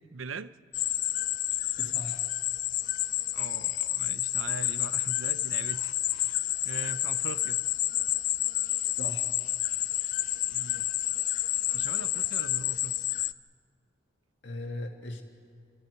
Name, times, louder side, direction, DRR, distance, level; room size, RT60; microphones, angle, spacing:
voice 1, 0.1-0.5 3.3-6.3 6.6-7.6 10.5-10.8 11.7-12.9, right 4 dB, 85° right, 14 dB, 0.7 m, -41 dB
sound 1, 0.7-13.3, left 13 dB, 40° left, 0.5 m, -29 dB
voice 2, 1.8-2.2 8.9-9.3 14.4-15.2, left 2 dB, 65° left, 3 dB, 1.8 m, -38 dB
27.5 x 26.0 x 4.6 m, 2.2 s
head